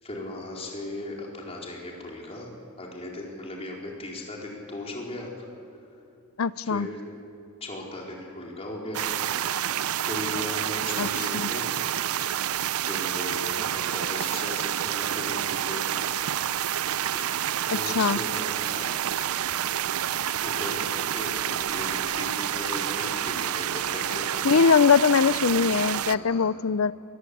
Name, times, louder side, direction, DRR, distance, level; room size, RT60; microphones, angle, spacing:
voice 1, 0.0-2.5 2.8-5.3 6.6-7.0 7.6-9.1 10.1-11.7 12.8-15.8 16.5-16.8 17.1-17.3 17.5-19.0 20.1-20.8 21.1-24.5 26.1-26.5, left 1 dB, 30° left, -1 dB, 4.4 m, -37 dB
voice 2, 6.4-6.9 11.0-11.1 11.3-11.5 17.7-18.2 24.4-26.9, left 5 dB, 70° left, 18 dB, 0.6 m, -21 dB
sound 1, 8.9-26.2, right 10 dB, 80° right, 0.5 m, -28 dB
23.5 x 21.0 x 8.6 m, 2.8 s
head